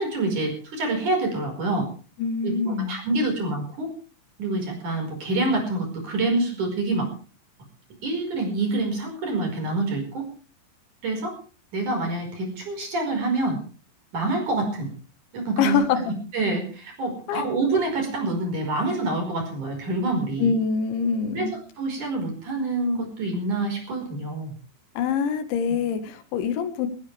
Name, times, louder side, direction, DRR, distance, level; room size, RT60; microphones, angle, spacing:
voice 1, 0.0-1.9 2.4-3.9 4.4-7.1 8.0-10.3 11.0-11.4 11.7-13.6 14.1-14.9 15.3-15.8 16.1-20.5 21.3-24.5, right 2 dB, 45° right, 3 dB, 6.3 m, -26 dB
voice 2, 2.2-3.0 15.6-16.0 17.3-17.5 20.4-21.6 25.0-26.9, left 6 dB, 85° left, 9 dB, 3.9 m, -24 dB
19.0 x 18.5 x 3.4 m, 0.38 s
omnidirectional pair, 5.2 m